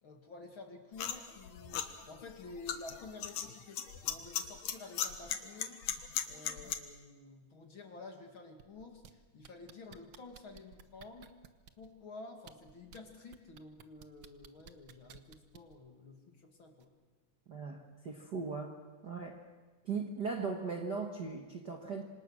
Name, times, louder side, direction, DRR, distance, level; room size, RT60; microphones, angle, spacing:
voice 1, 0.0-11.4 11.8-16.9, left 3 dB, 45° left, 3 dB, 2.8 m, -51 dB
sound 1, 1.0-6.8, left 9 dB, 65° left, 2.4 m, -38 dB
sound 2, 8.6-9.1 9.4-11.9 12.4-13.0 13.3-15.8 16.8-16.9, right 8 dB, 80° right, 1.0 m, -55 dB
voice 2, 17.5-18.7 19.0-19.4 19.8-22.0, right 4 dB, 45° right, 2 dB, 1.6 m, -38 dB
27.0 x 25.5 x 6.4 m, 1.3 s
omnidirectional pair, 3.6 m